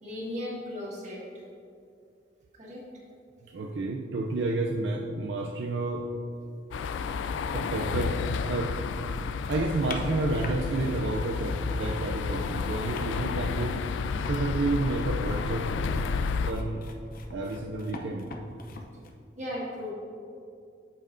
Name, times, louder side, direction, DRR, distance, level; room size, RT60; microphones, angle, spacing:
voice 1, 0.0-1.2 2.5-2.9 19.4-19.9, left 1 dB, 40° right, -4 dB, 1.7 m, -36 dB
voice 2, 3.5-6.1 7.5-8.7 9.5-13.8 14.3-15.7 16.5-16.8 17.3-18.3, right 2 dB, 70° right, 0 dB, 0.5 m, -30 dB
sound 1, 6.7-16.5, left 5 dB, 85° left, 0.3 m, -31 dB
sound 2, 9.8-11.6 11.9-19.1, left 3 dB, 50° left, 0.6 m, -44 dB
8.8 x 7.5 x 2.6 m, 2.5 s
head